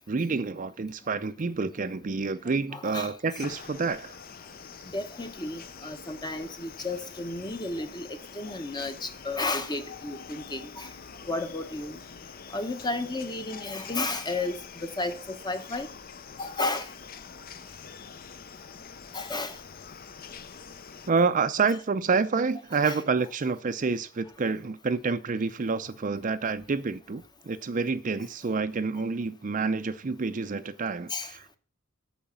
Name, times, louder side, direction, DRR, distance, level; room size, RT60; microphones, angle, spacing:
voice 1, 0.1-4.2 21.1-31.6, right 4 dB, 35° right, 0.5 m, -28 dB
voice 2, 2.7-3.4 4.9-10.9 11.2-12.0 12.5-15.9 16.4-16.9 19.1-19.6 22.7-23.0 31.1-31.3, left 2 dB, 20° left, 0.9 m, -33 dB
sound 1, 3.4-21.1, left 6 dB, 45° left, 0.6 m, -45 dB
8.7 x 6.4 x 7.0 m
head